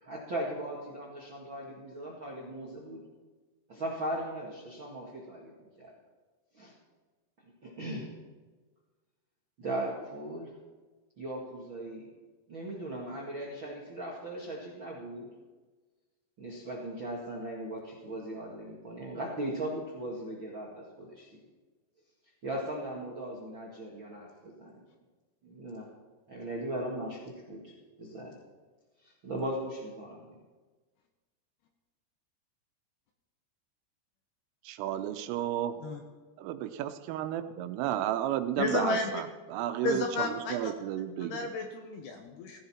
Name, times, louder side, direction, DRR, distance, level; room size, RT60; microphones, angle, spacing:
voice 1, 0.0-3.0 3.7-5.5 5.8-5.9 6.5-6.7 7.6-8.1 9.6-10.5 11.2-12.1 12.5-15.3 16.4-21.3 22.4-24.8 25.4-25.9 26.3-27.7 28.0-28.4 29.0-30.4, right 1 dB, 55° right, -4 dB, 1.3 m, -38 dB
voice 2, 34.7-35.8 36.4-41.5, right 11 dB, 85° right, 9 dB, 3.5 m, -33 dB
voice 3, 38.6-39.1 39.8-40.7 41.2-42.6, left 4 dB, 70° left, 4 dB, 2.7 m, -32 dB
17.0 x 15.5 x 4.4 m, 1.3 s
omnidirectional pair, 5.7 m